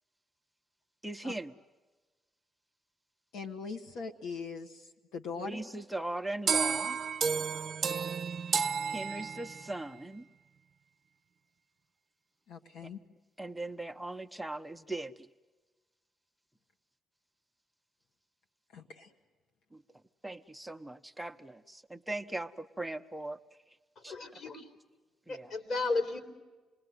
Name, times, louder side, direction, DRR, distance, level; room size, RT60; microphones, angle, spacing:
voice 1, 1.0-1.5 5.4-7.0 8.9-10.3 13.4-15.3 19.7-19.8 20.2-23.4 24.0-24.4 25.3-25.5, right 2 dB, 5° right, 6 dB, 0.8 m, -39 dB
voice 2, 3.3-5.6 12.5-13.0 18.7-19.1, left 5 dB, 85° left, 4 dB, 1.8 m, -41 dB
sound 1, 6.5-9.8, right 6 dB, 45° right, 1.1 m, -31 dB
voice 3, 24.1-24.6 25.3-26.2, left 3 dB, 60° left, 8 dB, 4.0 m, -33 dB
28.0 x 20.5 x 9.5 m, 1.3 s
cardioid pair, 90°, 0 cm